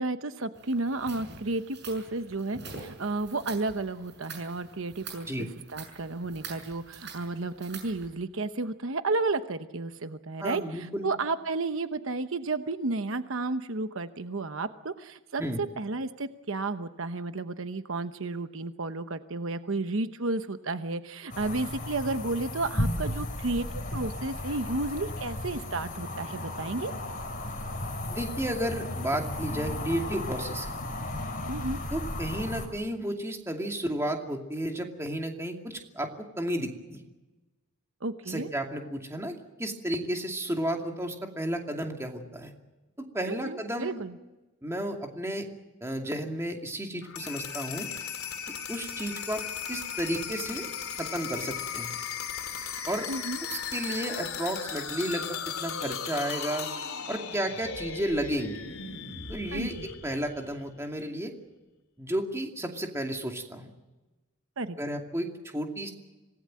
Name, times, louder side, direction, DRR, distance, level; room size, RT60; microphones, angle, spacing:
voice 1, 0.0-23.7 23.9-26.9 31.5-31.8 38.0-38.5 43.3-44.1 53.1-53.4 59.5-59.9 64.6-64.8, right 3 dB, 70° right, 10 dB, 0.9 m, -32 dB
sound 1, 0.5-8.1, right 4 dB, 55° right, 6.8 m, -46 dB
voice 2, 10.4-11.1 15.4-15.6 28.1-30.7 31.9-36.1 36.4-37.0 38.3-42.5 43.0-44.0 44.6-45.5 45.8-47.9 48.7-49.4 49.7-50.7 51.0-52.0 52.9-53.1 53.5-56.7 57.1-58.6 59.3-59.7 60.0-61.3 62.0-63.7 64.8-65.9, right 1 dB, 15° right, 2 dB, 2.5 m, -32 dB
sound 2, 21.3-32.7, left 1 dB, 40° left, 5.0 m, -35 dB
sound 3, 47.0-60.8, left 7 dB, 90° left, 3.1 m, -37 dB
26.5 x 18.5 x 7.7 m, 1.1 s
head